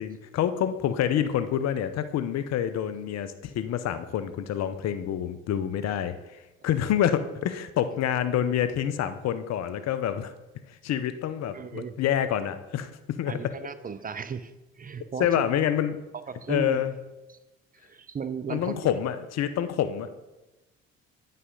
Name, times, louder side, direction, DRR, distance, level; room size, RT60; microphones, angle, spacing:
voice 1, 0.0-6.1 6.6-10.3 10.8-13.4 15.2-16.0 16.5-16.9 18.5-20.1, left 10 dB, 60° left, 0.7 m, -27 dB
voice 2, 11.5-12.0 13.3-15.4 16.3-16.9 17.8-18.8, right 6 dB, 30° right, 0.6 m, -35 dB
9.4 x 5.6 x 3.8 m
hypercardioid pair, 60°, 30 cm